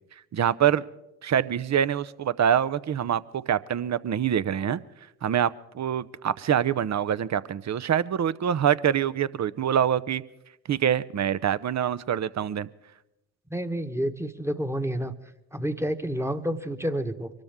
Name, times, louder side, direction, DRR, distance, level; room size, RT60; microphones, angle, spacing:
voice 1, 0.3-0.8 1.2-4.8 5.2-10.2 10.7-12.7, right 9 dB, 40° right, 17 dB, 0.7 m, -25 dB
voice 2, 13.5-15.1 15.5-17.3, equal, 5° right, 8 dB, 1.3 m, -29 dB
24.5 x 13.0 x 3.7 m, 0.89 s
hypercardioid pair, 45°, 43 cm